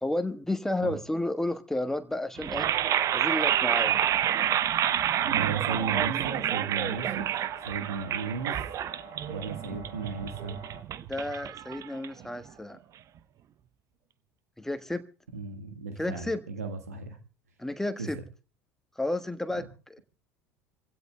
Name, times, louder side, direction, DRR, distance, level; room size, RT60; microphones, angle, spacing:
voice 1, 0.0-2.7 3.1-3.9 11.1-12.8 14.6-15.1 16.0-16.4 17.6-18.2 19.0-20.0, left 1 dB, 5° left, 1.3 m, -31 dB
sound 1, 2.4-12.4, right 10 dB, 40° right, 0.8 m, -28 dB
sound 2, 3.3-10.8, right 4 dB, 60° right, 3.2 m, -47 dB
voice 2, 4.9-7.3 7.6-8.6 9.2-10.6 15.3-17.2 18.0-18.1 19.6-19.7, right 5 dB, 80° right, 1.5 m, -35 dB
27.0 x 16.5 x 2.2 m
figure-of-eight pair, 70°, 8 cm